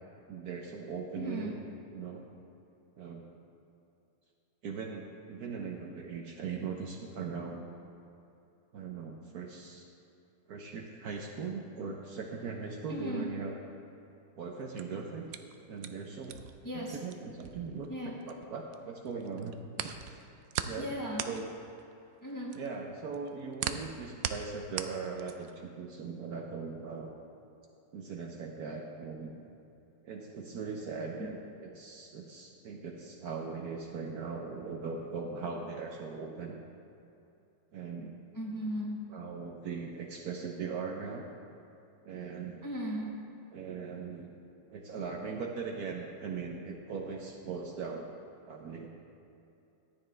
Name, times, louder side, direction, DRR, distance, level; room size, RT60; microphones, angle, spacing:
voice 1, 0.3-1.6 1.9-2.2 3.0-3.3 4.6-7.7 8.7-9.9 10.5-13.6 14.4-15.2 15.7-16.4 16.7-20.2 20.7-20.9 21.2-21.5 22.5-27.1 27.9-29.3 30.0-36.6 37.7-38.1 39.1-41.2 42.0-42.7 43.5-44.3 44.7-48.1 48.5-48.9, right 5 dB, 60° right, 1 dB, 1.1 m, -40 dB
voice 2, 1.2-1.6 12.9-13.3 16.6-16.9 17.9-18.2 20.8-21.3 22.2-22.6 38.3-39.0 42.6-43.1, equal, 15° left, -3 dB, 1.0 m, -36 dB
sound 1, 14.6-18.8 19.1-25.6, right 9 dB, 85° right, 0.7 m, -39 dB
14.5 x 9.9 x 3.3 m, 2.8 s
omnidirectional pair, 2.0 m